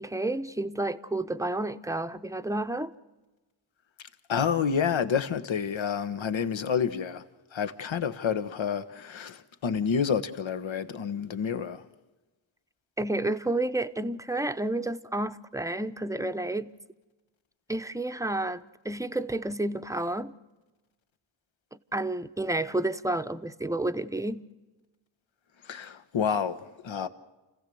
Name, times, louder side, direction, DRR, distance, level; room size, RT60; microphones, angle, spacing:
voice 1, 0.0-2.9 13.0-16.7 17.7-20.3 21.9-24.5, right 2 dB, 5° right, 0.8 m, -30 dB
voice 2, 4.3-7.2 7.5-11.8 25.6-27.1, left 7 dB, 65° left, 1.2 m, -29 dB
29.0 x 15.5 x 7.7 m
cardioid pair, 60°, 49 cm